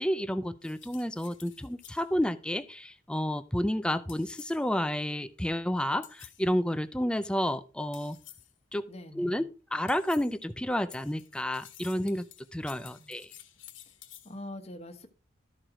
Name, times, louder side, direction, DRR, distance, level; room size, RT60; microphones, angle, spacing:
voice 1, 0.0-8.2 8.7-8.8 9.2-12.3 12.5-13.3, equal, 5° left, 0.4 m, -30 dB
sound 1, 0.6-2.1 4.1-4.7 6.0-6.5 7.9-8.6 9.9-10.4 10.9-14.4, left 12 dB, 80° left, 1.5 m, -52 dB
voice 2, 8.9-9.5 12.9-13.1 14.2-15.1, left 1 dB, 35° left, 1.1 m, -44 dB
13.0 x 4.5 x 4.9 m
head